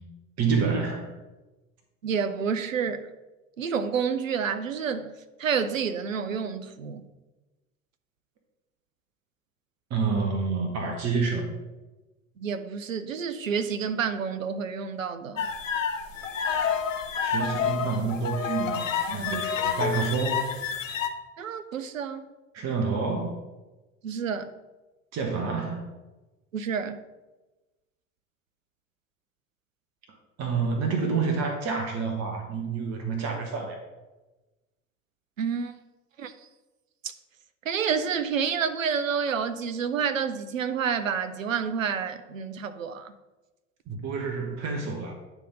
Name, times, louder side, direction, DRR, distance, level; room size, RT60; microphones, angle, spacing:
voice 1, 0.4-1.1 9.9-11.5 17.2-20.5 22.5-23.4 25.1-25.9 30.4-33.8 43.9-45.1, right 5 dB, 40° right, 1.2 m, -28 dB
voice 2, 2.0-3.1 3.6-5.1 5.4-7.0 12.4-15.5 21.4-22.2 24.0-24.5 26.5-27.0 35.4-35.7 36.2-36.3 37.7-43.1, right 6 dB, 85° right, 0.6 m, -29 dB
sound 1, 15.4-21.1, left 7 dB, 85° left, 0.7 m, -29 dB
9.3 x 3.5 x 5.0 m
figure-of-eight pair, 65°, 38 cm